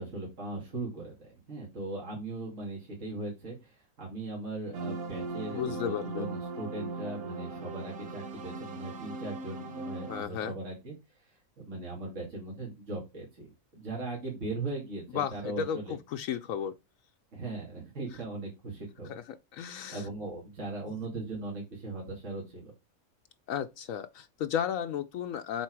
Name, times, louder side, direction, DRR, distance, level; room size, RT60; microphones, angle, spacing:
voice 1, 0.0-15.9 17.3-19.2 19.7-22.7, right 2 dB, 60° right, 2.9 m, -39 dB
sound 1, 4.7-10.2, right 3 dB, 80° right, 1.5 m, -39 dB
voice 2, 5.5-6.3 10.1-10.5 15.1-16.7 19.1-19.2 19.5-20.0 23.5-25.6, left 8 dB, 75° left, 1.0 m, -34 dB
7.4 x 4.1 x 4.6 m
omnidirectional pair, 1.5 m